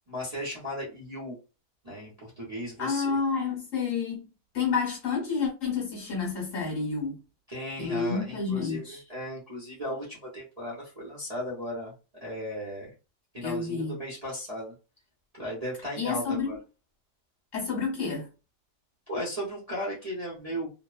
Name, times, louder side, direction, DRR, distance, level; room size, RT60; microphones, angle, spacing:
voice 1, 0.1-1.4 1.8-3.2 7.5-11.9 12.2-12.9 13.3-14.7 15.4-16.6 19.1-20.7, equal, 30° right, 0.7 m, -36 dB
voice 2, 2.8-4.2 4.5-7.2 7.8-9.0 13.4-13.9 16.0-16.5 17.5-18.3, left 5 dB, 55° left, 1.2 m, -29 dB
2.9 x 2.1 x 2.3 m
omnidirectional pair, 1.8 m